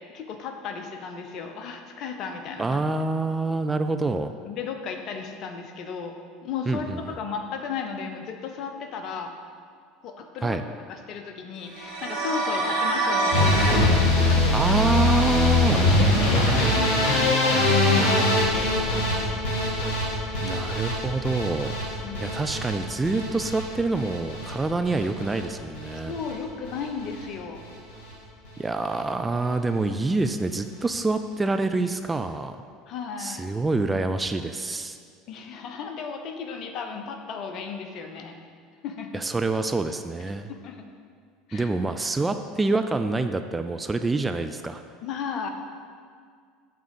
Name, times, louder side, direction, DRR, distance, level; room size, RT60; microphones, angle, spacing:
voice 1, 0.1-2.7 4.4-6.2 6.4-9.3 10.0-10.6 10.9-14.6 16.0-19.5 22.0-22.3 26.1-27.6 32.9-33.5 35.3-38.4 38.8-39.2 40.5-40.9 41.5-41.7 45.0-45.5, left 6 dB, 50° left, 5 dB, 0.8 m, -35 dB
voice 2, 2.6-4.3 6.7-7.0 10.4-10.6 14.5-15.9 20.4-21.7 22.2-26.2 28.6-32.6 33.2-35.0 39.1-40.5 41.5-44.8, right 3 dB, 15° right, 8 dB, 0.4 m, -26 dB
sound 1, 11.7-13.9, right 2 dB, 75° right, 1.9 m, -25 dB
sound 2, 13.3-25.4 25.7-26.3 26.6-27.2 27.6-27.8 28.1-28.2 28.5-28.6, left 1 dB, 70° left, 2.0 m, -23 dB
8.6 x 3.7 x 6.9 m, 2.1 s
figure-of-eight pair, 70°, 0 cm